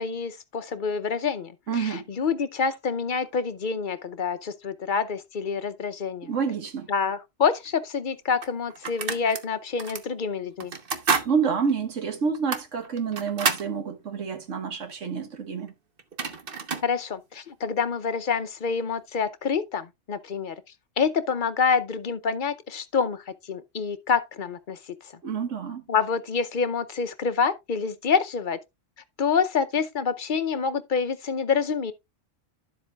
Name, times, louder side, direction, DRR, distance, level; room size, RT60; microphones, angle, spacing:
voice 1, 0.0-6.3 6.9-10.7 16.8-20.6 21.0-25.2 25.9-28.6 29.2-31.9, left 5 dB, 45° left, 0.8 m, -27 dB
voice 2, 1.7-2.1 6.2-6.9 11.3-15.7 25.2-25.8, right 6 dB, 70° right, 1.7 m, -28 dB
sound 1, 7.6-7.7 8.4-9.4 9.8-10.0 10.6-11.3 11.7-11.8 12.3-13.7 15.7-15.8 16.0-16.9, right 5 dB, 50° right, 1.1 m, -29 dB
11.5 x 7.7 x 2.3 m
omnidirectional pair, 1.3 m